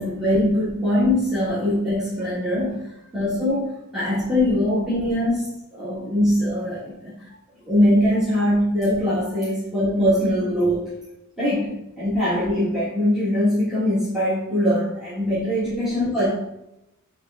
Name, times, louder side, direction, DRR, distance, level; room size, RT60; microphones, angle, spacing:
voice 1, 0.0-7.3 7.6-10.9 11.4-16.3, left 1 dB, ahead, -11 dB, 1.7 m, -22 dB
8.1 x 3.3 x 3.5 m, 0.86 s
head